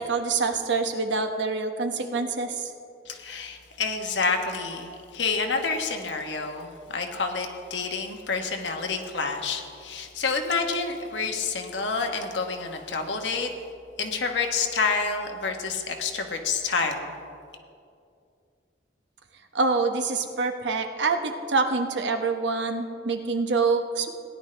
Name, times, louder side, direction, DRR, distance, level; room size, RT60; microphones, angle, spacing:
voice 1, 0.0-2.7 19.5-24.1, right 4 dB, 80° right, 6 dB, 0.9 m, -26 dB
voice 2, 3.0-13.5 14.0-17.1, left 4 dB, 85° left, 4 dB, 1.2 m, -28 dB
17.5 x 10.5 x 3.3 m, 2.5 s
head